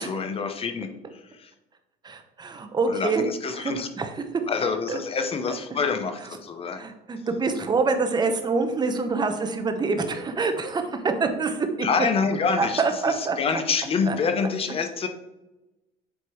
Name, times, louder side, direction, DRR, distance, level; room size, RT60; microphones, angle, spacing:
voice 1, 0.0-1.5 2.9-3.9 4.5-6.8 11.8-15.1, left 5 dB, 35° left, 7 dB, 0.9 m, -27 dB
voice 2, 2.0-3.2 3.6-4.1 4.9-5.0 6.8-11.9 12.6-13.4 14.1-14.2, right 4 dB, 25° right, 6 dB, 0.9 m, -26 dB
7.9 x 3.0 x 4.8 m, 0.97 s
cardioid pair, 120°, 17 cm